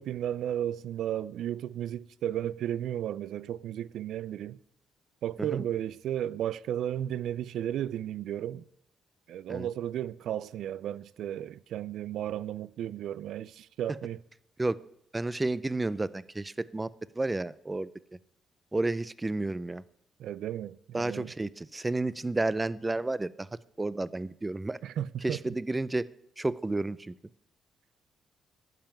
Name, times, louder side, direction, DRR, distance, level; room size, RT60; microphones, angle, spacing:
voice 1, 0.0-4.6 5.2-8.6 9.3-14.2 20.2-21.3 24.8-25.4, right 11 dB, 75° right, 0.3 m, -34 dB
voice 2, 15.1-17.9 18.7-19.8 20.9-23.5 23.8-24.8 25.2-26.1 26.4-27.1, right 2 dB, 15° right, 0.5 m, -31 dB
11.5 x 5.7 x 8.9 m
cardioid pair, 90°, 0 cm